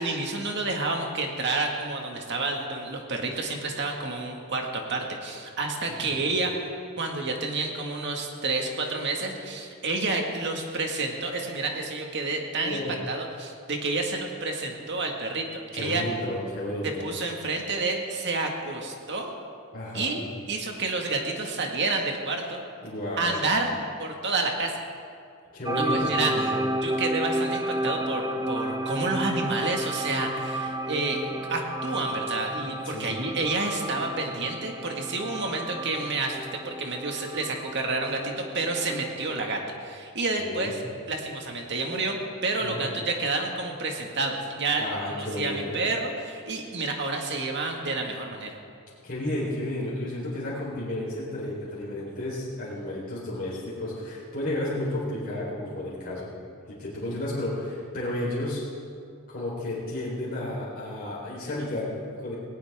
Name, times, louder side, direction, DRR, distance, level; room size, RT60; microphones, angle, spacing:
voice 1, 0.0-6.6 7.0-12.8 13.1-16.0 16.8-19.3 19.9-22.6 23.2-23.7 24.0-24.8 25.8-26.3 26.8-31.2 31.5-40.8 41.1-48.6, right 3 dB, 50° right, 2 dB, 1.9 m, -29 dB
voice 2, 12.6-12.9 15.7-17.1 19.7-20.2 22.8-23.4 25.5-26.6 32.8-33.1 40.4-40.7 42.6-43.0 44.8-45.8 49.0-56.3 56.7-58.6 59.3-62.3, left 1 dB, 40° left, -8 dB, 4.1 m, -32 dB
sound 1, 25.7-39.6, right 1 dB, 15° right, 0.6 m, -32 dB
18.5 x 18.5 x 3.7 m, 2.3 s
head